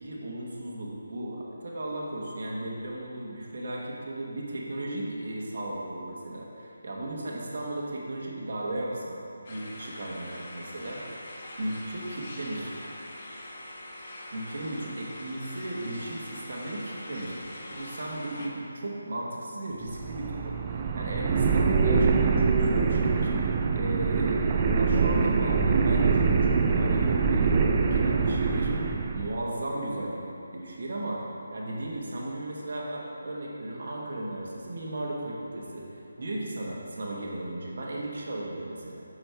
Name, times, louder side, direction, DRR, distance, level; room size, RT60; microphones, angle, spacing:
voice 1, 0.0-9.2 9.5-11.0 11.6-12.7 14.3-17.3 17.6-28.7 29.1-30.2 30.5-31.2 31.5-39.0, right 1 dB, 55° right, -3 dB, 1.3 m, -35 dB
sound 1, 9.4-18.5, left 1 dB, 40° left, 0.8 m, -43 dB
sound 2, 19.8-29.4, right 5 dB, 25° right, 0.3 m, -24 dB
6.1 x 6.1 x 3.4 m, 2.6 s
figure-of-eight pair, 165°, 0 cm